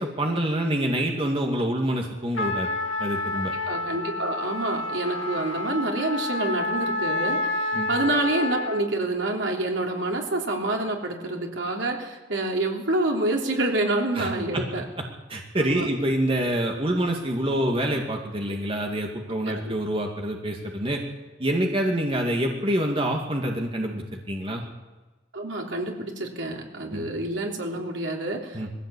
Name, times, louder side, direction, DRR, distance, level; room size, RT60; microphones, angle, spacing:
voice 1, 0.0-2.7 3.0-3.5 7.7-7.9 14.1-14.6 15.3-21.0 21.4-24.6 26.9-27.1 28.5-28.7, right 1 dB, 30° right, 2 dB, 2.2 m, -26 dB
Trumpet, 2.3-8.9, left 2 dB, 90° left, 2.2 m, -29 dB
voice 2, 3.7-14.8 15.5-15.9 19.2-19.7 25.3-28.7, right 2 dB, 75° right, 1 dB, 3.4 m, -28 dB
21.0 x 15.5 x 8.5 m, 1.2 s
head